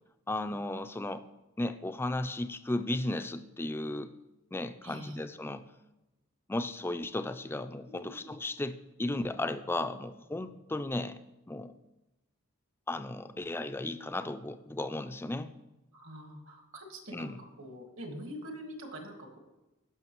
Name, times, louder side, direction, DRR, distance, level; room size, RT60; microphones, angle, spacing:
voice 1, 0.3-1.2 1.6-4.1 4.5-5.6 6.5-11.2 11.5-11.7 12.9-15.5 17.1-17.4, left 2 dB, 10° left, 10 dB, 0.3 m, -35 dB
voice 2, 4.8-5.2 7.9-8.4 9.9-10.0 15.9-19.4, equal, 65° right, 3 dB, 1.7 m, -45 dB
17.0 x 5.9 x 3.0 m, 1.0 s
head